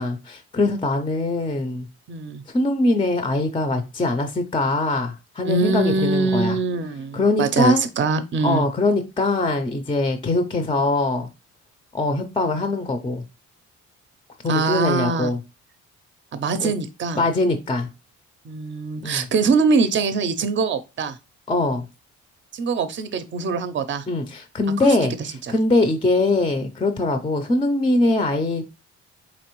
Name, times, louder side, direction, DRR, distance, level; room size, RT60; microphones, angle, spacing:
voice 1, 0.0-1.9 2.5-6.6 7.1-7.9 8.4-11.3 11.9-13.2 14.4-15.4 16.6-16.7 17.2-17.9 19.0-19.3 21.5-21.9 24.1-25.1 25.5-28.6, left 2 dB, 20° left, 0.5 m, -22 dB
voice 2, 2.1-2.4 5.4-8.6 14.5-15.3 16.3-17.2 18.4-21.2 22.5-24.0 24.8-25.0, right 4 dB, 40° right, 0.6 m, -23 dB
4.1 x 2.9 x 3.0 m
cardioid pair, 90°, 30 cm